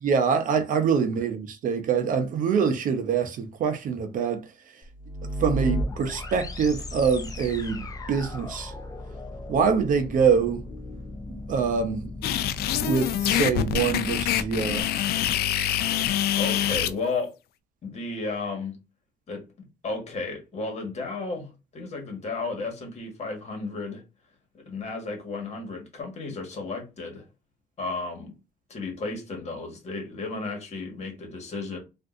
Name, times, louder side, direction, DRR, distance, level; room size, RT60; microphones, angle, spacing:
voice 1, 0.0-4.4 5.4-8.7 9.5-10.6 11.3-12.1 12.8-14.9, right 6 dB, 50° right, 0.6 m, -25 dB
sound 1, 4.8-14.8, equal, 20° left, 0.6 m, -35 dB
sound 2, 12.2-16.9, left 11 dB, 70° left, 0.4 m, -25 dB
voice 2, 16.3-17.3 17.8-18.8 19.3-19.4 19.8-24.0 24.5-27.2 27.8-28.3 28.7-31.8, left 3 dB, 40° left, 1.5 m, -33 dB
3.5 x 2.5 x 2.5 m
cardioid pair, 110°, 17 cm